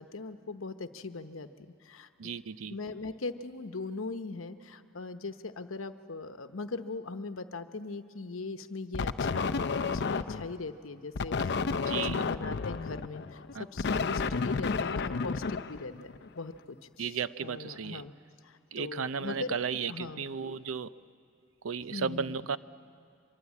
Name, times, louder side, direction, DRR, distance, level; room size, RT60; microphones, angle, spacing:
voice 1, 0.0-2.3 2.7-18.1 18.4-19.6 19.9-20.3 21.9-22.5, left 3 dB, 80° left, 10 dB, 1.0 m, -40 dB
voice 2, 2.2-2.7 11.9-12.2 13.5-13.6 17.0-18.0 18.7-20.9 21.6-22.6, right 6 dB, 85° right, 15 dB, 0.6 m, -34 dB
sound 1, 8.9-10.6 11.2-16.3, left 4 dB, 55° left, 0.6 m, -31 dB
24.5 x 22.0 x 8.4 m, 2.4 s
head